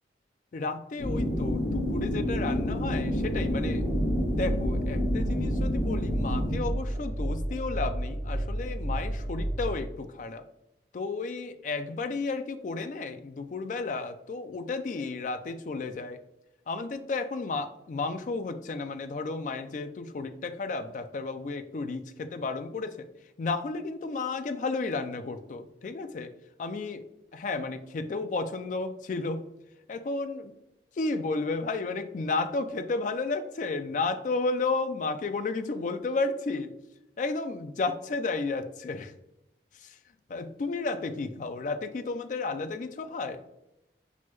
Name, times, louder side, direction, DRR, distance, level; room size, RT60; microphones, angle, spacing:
voice 1, 0.5-3.8 4.4-10.4 10.9-16.2 16.7-23.1 23.4-26.3 26.6-27.0 27.3-29.4 29.9-30.5 31.0-36.7 37.2-39.1 39.8-40.0 40.3-43.4, left 3 dB, 45° left, 10 dB, 0.3 m, -32 dB
sound 1, 1.0-6.6, equal, 60° left, 1.0 m, -29 dB
sound 2, 3.7-9.8, right 1 dB, 30° right, 1.1 m, -32 dB
6.0 x 2.2 x 3.0 m, 0.88 s
head